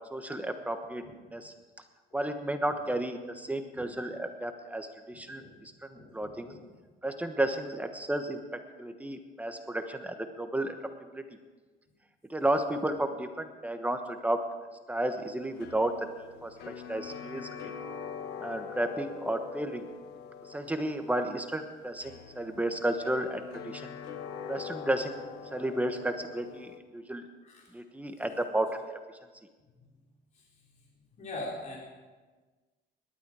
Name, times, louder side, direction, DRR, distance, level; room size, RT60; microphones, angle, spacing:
voice 1, 0.1-1.0 1.3-1.5 2.1-6.5 7.0-10.7 11.1-11.2 12.3-14.4 14.9-16.1 16.4-17.7 18.4-19.9 20.4-23.9 24.5-25.2 25.5-27.2 27.7-29.0, right 1 dB, 10° right, 6 dB, 1.2 m, -32 dB
voice 2, 5.1-5.6 5.9-6.6 22.5-22.6 27.4-27.6 29.8-29.9 30.3-30.4 30.7-30.9 31.2-31.8, left 2 dB, 45° left, -3 dB, 3.9 m, -43 dB
sound 1, 15.3-26.8, left 6 dB, 85° left, 1.2 m, -44 dB
18.5 x 12.0 x 4.9 m, 1.3 s
cardioid pair, 110°, 17 cm